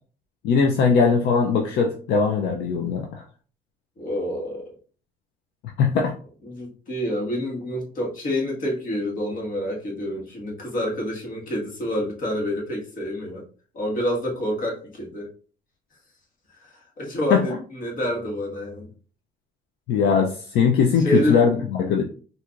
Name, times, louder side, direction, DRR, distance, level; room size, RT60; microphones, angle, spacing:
voice 1, 0.4-3.1 5.8-6.1 17.3-17.4 19.9-22.0, left 5 dB, 75° left, 2 dB, 0.6 m, -20 dB
voice 2, 4.0-4.7 6.4-13.4 13.7-15.3 16.6-18.9 20.9-21.4, equal, 55° left, -2 dB, 1.7 m, -28 dB
4.4 x 2.6 x 2.5 m, 0.41 s
cardioid pair, 110°, 17 cm